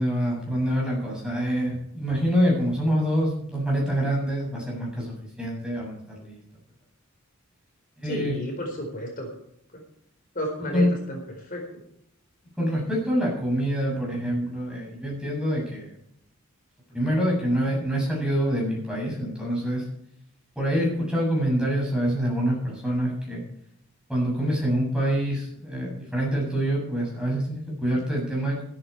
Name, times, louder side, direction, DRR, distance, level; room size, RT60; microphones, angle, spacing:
voice 1, 0.0-6.4 8.0-8.3 10.7-10.9 12.6-15.9 16.9-19.8 20.6-23.4 24.1-28.6, equal, 5° right, -3 dB, 7.6 m, -26 dB
voice 2, 8.0-9.3 10.3-11.6, left 1 dB, 40° left, 1 dB, 4.5 m, -32 dB
14.5 x 13.5 x 4.8 m, 0.72 s
head